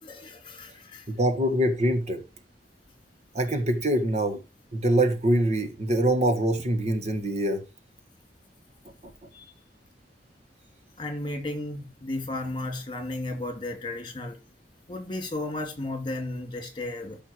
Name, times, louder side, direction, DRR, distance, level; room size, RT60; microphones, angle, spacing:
voice 1, 0.0-1.1 9.3-9.5 11.0-14.4 14.9-17.2, left 2 dB, 30° left, 2.8 m, -34 dB
voice 2, 1.1-2.2 3.3-4.4 4.7-7.6, right 1 dB, 40° right, 1.4 m, -24 dB
13.5 x 5.7 x 4.6 m
head